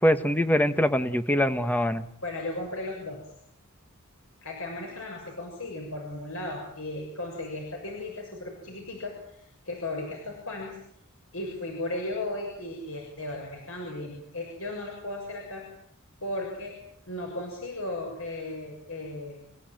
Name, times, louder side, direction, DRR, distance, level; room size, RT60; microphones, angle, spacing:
voice 1, 0.0-2.1, equal, 10° left, 9 dB, 1.4 m, -23 dB
voice 2, 2.2-3.2 4.4-10.8 11.3-15.7 16.2-16.7 17.1-19.4, left 2 dB, 85° left, 0 dB, 6.9 m, -36 dB
29.0 x 16.0 x 9.2 m, 0.71 s
head